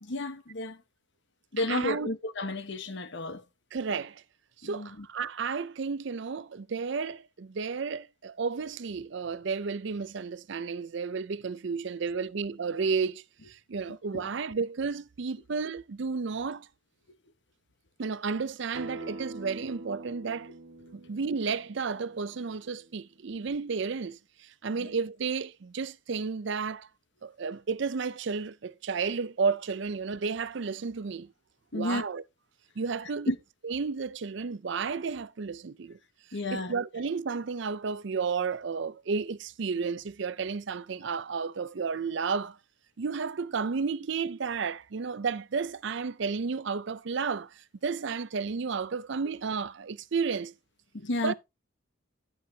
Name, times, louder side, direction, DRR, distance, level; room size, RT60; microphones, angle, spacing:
voice 1, 0.0-0.8 1.5-3.4 4.6-5.1 13.9-14.3 19.0-19.1 24.8-24.9 31.7-32.1 33.3-33.4 36.3-36.7 50.9-51.3, left 2 dB, 60° left, 1.2 m, -32 dB
voice 2, 1.7-2.1 3.7-4.2 4.6-16.7 18.0-20.5 20.9-26.9 27.2-31.3 31.7-32.2 32.8-33.3 33.6-36.0 36.5-42.6 43.0-50.5 51.2-51.3, right 5 dB, 60° right, 0.5 m, -32 dB
Acoustic guitar, 18.7-23.9, right 2 dB, 75° right, 2.1 m, -45 dB
13.0 x 8.5 x 2.8 m
head